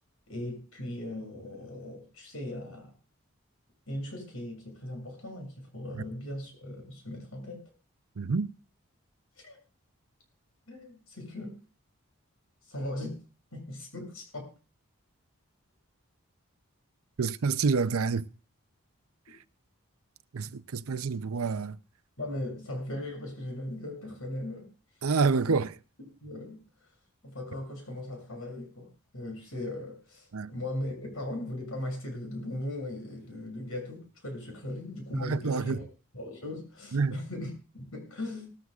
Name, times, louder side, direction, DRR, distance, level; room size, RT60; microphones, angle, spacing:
voice 1, 0.3-2.9 3.9-7.6 9.4-9.6 10.7-11.6 12.7-13.2 13.5-14.5 22.2-24.7 25.3-25.6 26.2-26.6 27.2-35.8 36.1-38.5, left 1 dB, 80° left, 7.0 m, -38 dB
voice 2, 8.2-8.5 17.2-18.3 19.3-19.4 20.3-21.8 25.0-25.8 30.3-30.5 35.1-35.8 36.9-37.2, right 4 dB, 90° right, 0.6 m, -28 dB
19.5 x 14.0 x 2.4 m
head